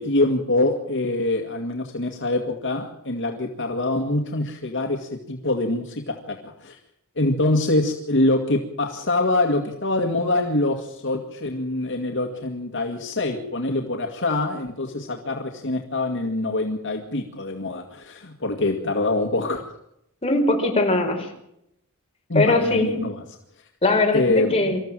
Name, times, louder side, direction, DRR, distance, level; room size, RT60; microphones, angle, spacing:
voice 1, 0.0-6.8 7.2-19.6 22.3-23.2 24.1-24.7, left 2 dB, 55° left, 3 dB, 2.0 m, -24 dB
voice 2, 20.2-21.3 22.3-23.0 23.8-24.8, left 2 dB, 25° left, 1 dB, 4.9 m, -21 dB
26.0 x 14.5 x 7.6 m, 0.78 s
head